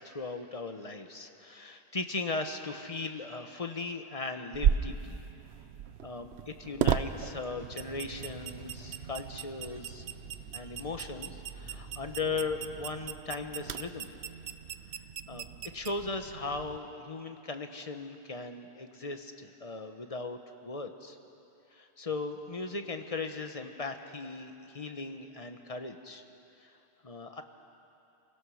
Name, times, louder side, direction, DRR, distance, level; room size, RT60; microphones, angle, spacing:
voice 1, 0.0-5.2 6.0-10.1 10.5-14.1 15.3-15.5 15.7-21.2 21.7-26.2 26.6-26.7 27.0-27.4, left 3 dB, 35° left, 7 dB, 1.1 m, -38 dB
sound 1, 4.5-16.8, right 9 dB, 80° right, 0.9 m, -36 dB
sound 2, 7.6-13.1, right 4 dB, 60° right, 1.6 m, -48 dB
27.5 x 16.5 x 6.4 m, 2.8 s
omnidirectional pair, 1.1 m